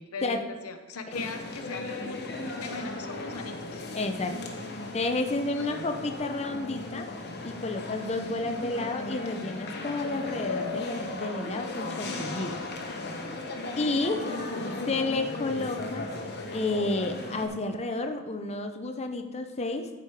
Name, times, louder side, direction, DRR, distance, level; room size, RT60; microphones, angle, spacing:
voice 1, 0.0-3.8 5.6-5.9 14.2-14.8, left 4 dB, 80° left, 7 dB, 0.9 m, -40 dB
sound 1, 1.1-17.5, left 2 dB, 50° left, 1.1 m, -36 dB
voice 2, 3.9-4.6 4.9-7.1 7.4-12.6 13.8-14.2 14.9-16.1 16.5-19.9, left 2 dB, 30° left, 6 dB, 0.6 m, -31 dB
13.0 x 5.1 x 4.6 m, 1.3 s
head